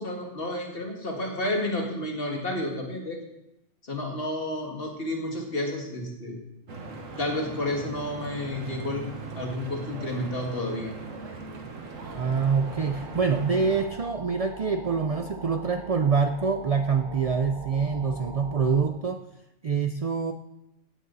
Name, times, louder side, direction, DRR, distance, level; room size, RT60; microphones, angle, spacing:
voice 1, 0.0-3.2 3.9-6.4 7.2-9.1 9.3-10.9, left 1 dB, 45° left, 1 dB, 2.3 m, -31 dB
Stream / Boat Water vehicle, 6.7-13.9, right 3 dB, 80° right, 1.9 m, -40 dB
sound 1, 12.0-18.9, right 2 dB, 35° right, 1.9 m, -42 dB
voice 2, 12.1-19.2 19.6-20.3, right 5 dB, 55° right, 7 dB, 0.4 m, -25 dB
16.5 x 9.3 x 4.1 m, 0.86 s
omnidirectional pair, 1.3 m